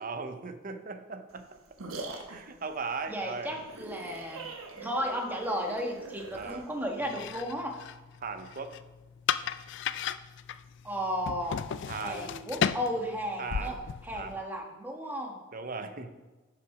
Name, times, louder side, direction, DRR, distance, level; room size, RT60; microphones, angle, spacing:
voice 1, 0.0-1.5 2.3-3.5 6.3-6.7 8.2-8.8 11.9-12.4 13.4-13.8 14.1-14.4 15.5-16.1, right 4 dB, 40° right, 9 dB, 0.7 m, -38 dB
sound 1, 1.3-7.3, right 3 dB, 75° right, 1.2 m, -44 dB
voice 2, 3.1-4.5 4.8-7.7 10.8-11.6 12.0-13.8 14.0-15.4, equal, 10° right, 1 dB, 1.3 m, -34 dB
sound 2, 7.0-14.4, left 8 dB, 55° left, 0.3 m, -35 dB
11.0 x 5.8 x 4.8 m, 1.2 s
head